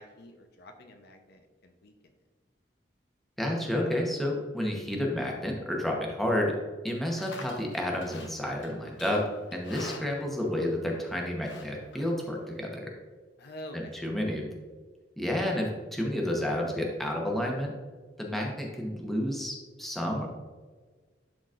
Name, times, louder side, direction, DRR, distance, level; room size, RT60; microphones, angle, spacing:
voice 1, 0.0-1.9 9.9-10.1 13.4-13.9, equal, 60° left, 5 dB, 0.6 m, -47 dB
voice 2, 3.4-6.6 6.8-9.2 9.5-12.9 13.7-14.5 15.2-17.7 18.2-20.4, left 1 dB, ahead, -1 dB, 0.9 m, -30 dB
Livestock farm animals working animals, 6.9-12.6, left 2 dB, 80° left, 0.9 m, -47 dB
11.5 x 3.9 x 2.5 m, 1.4 s
head